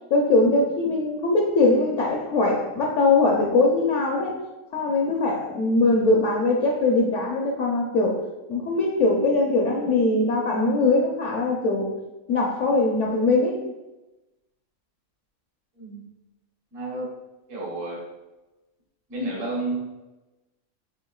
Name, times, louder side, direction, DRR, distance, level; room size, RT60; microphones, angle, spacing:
voice 1, 0.1-4.3 4.7-8.2 8.5-11.9 12.3-13.6, left 2 dB, 65° left, 0 dB, 1.0 m, -21 dB
voice 2, 15.7-16.0 16.7-17.1 17.5-18.0 19.1-19.9, right 2 dB, 70° right, -4 dB, 1.6 m, -31 dB
6.4 x 3.4 x 2.3 m, 1.0 s
omnidirectional pair, 1.4 m